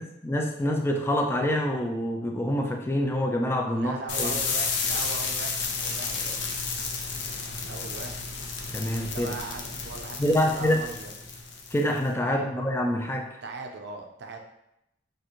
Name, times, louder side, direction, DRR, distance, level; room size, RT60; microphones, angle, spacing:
voice 1, 0.0-4.3 8.7-9.3 10.2-10.8 11.7-13.3, left 1 dB, 10° left, 2 dB, 0.4 m, -26 dB
voice 2, 3.7-6.5 7.7-8.2 8.8-11.1 12.2-12.5 13.4-14.4, right 3 dB, 60° right, 3 dB, 0.6 m, -39 dB
sound 1, 4.1-12.0, left 4 dB, 60° left, 0.6 m, -32 dB
6.5 x 2.5 x 3.0 m, 0.83 s
head